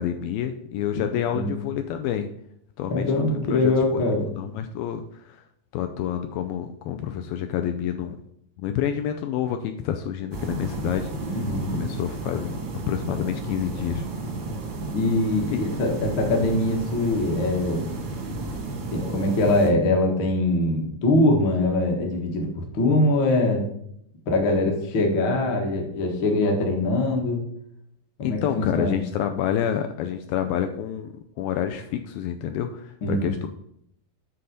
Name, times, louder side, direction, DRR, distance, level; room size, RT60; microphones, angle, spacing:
voice 1, 0.0-2.3 2.8-4.0 4.4-5.4 5.7-8.2 8.6-11.1 11.7-14.0 15.5-15.6 28.2-33.5, left 9 dB, 80° left, 7 dB, 2.2 m, -28 dB
voice 2, 2.9-4.3 11.3-11.8 14.9-17.9 18.9-23.6 24.3-27.4 28.2-29.0 33.0-33.3, left 2 dB, 60° left, 1 dB, 1.3 m, -23 dB
sound 1, 10.3-19.7, right 2 dB, 70° right, 1.1 m, -32 dB
7.6 x 4.1 x 6.5 m, 0.72 s
omnidirectional pair, 4.4 m